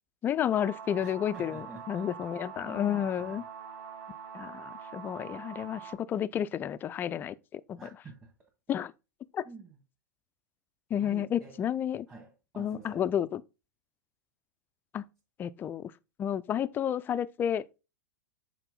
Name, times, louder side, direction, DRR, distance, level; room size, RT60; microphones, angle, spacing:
voice 1, 0.2-3.4 4.3-7.8 8.7-8.9 9.3-9.4 10.9-12.1 12.6-13.4 14.9-15.1 15.4-15.9 16.2-17.8, left 9 dB, 20° left, 0.3 m, -31 dB
sound 1, 0.5-6.0, right 7 dB, 45° right, 1.6 m, -44 dB
voice 2, 1.0-2.1 2.6-3.5 7.8-8.3 9.4-9.8 11.0-11.6 12.1-13.1, right 4 dB, 20° right, 1.8 m, -49 dB
8.0 x 4.5 x 3.8 m
figure-of-eight pair, 100°, 10 cm